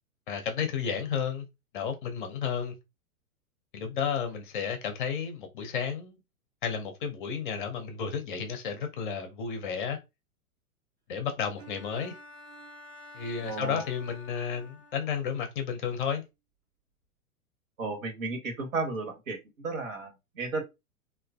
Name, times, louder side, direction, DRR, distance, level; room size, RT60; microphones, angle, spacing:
voice 1, 0.3-1.5 1.7-2.7 3.7-6.2 6.6-10.0 11.1-12.1 13.1-16.2, left 7 dB, 35° left, 0.6 m, -32 dB
Bowed string instrument, 11.6-15.3, left 1 dB, 85° right, 1.0 m, -50 dB
voice 2, 13.4-13.9 17.8-20.6, right 3 dB, 60° right, 1.0 m, -34 dB
3.1 x 2.3 x 2.3 m
figure-of-eight pair, 105°, 45 cm